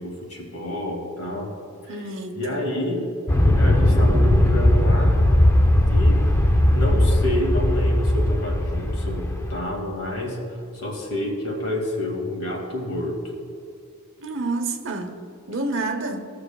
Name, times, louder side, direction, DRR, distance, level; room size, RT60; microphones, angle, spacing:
voice 1, 0.0-1.5 1.8-3.1 3.4-5.2 5.8-6.2 6.7-13.2, left 1 dB, 80° left, 2.2 m, -28 dB
voice 2, 1.9-2.6 14.2-15.2 15.5-16.3, right 2 dB, 60° right, 0.9 m, -29 dB
Aircraft, 3.3-9.6, left 1 dB, 10° left, 0.5 m, -18 dB
16.0 x 6.4 x 2.4 m
head